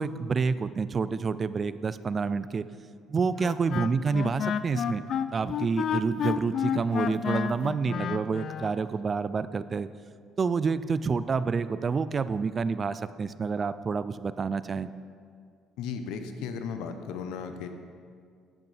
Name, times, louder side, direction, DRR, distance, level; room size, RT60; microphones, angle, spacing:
voice 1, 0.0-2.7 3.1-5.0 5.3-9.9 10.4-14.9, right 5 dB, 35° right, 15 dB, 0.3 m, -28 dB
Wind instrument woodwind instrument, 3.4-8.7, left 8 dB, 55° left, 0.4 m, -30 dB
voice 2, 15.8-17.7, left 6 dB, 80° left, 7 dB, 0.7 m, -35 dB
10.5 x 8.3 x 3.3 m, 2.2 s
cardioid pair, 95°, 0 cm